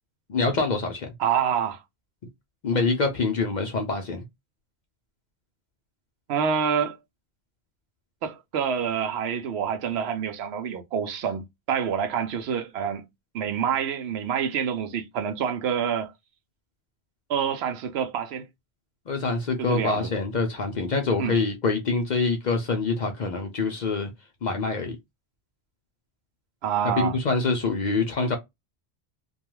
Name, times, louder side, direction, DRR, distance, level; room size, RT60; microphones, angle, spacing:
voice 1, 0.3-1.1 2.6-4.2 19.1-24.1 24.4-25.0 27.0-28.4, left 3 dB, 55° left, 0.5 m, -25 dB
voice 2, 1.2-1.8 6.3-7.0 8.2-13.1 13.3-16.1 17.3-18.5 19.6-20.1 21.2-21.4 26.6-27.2, right 7 dB, 75° right, 0.8 m, -27 dB
2.3 x 2.2 x 2.9 m
omnidirectional pair, 1.1 m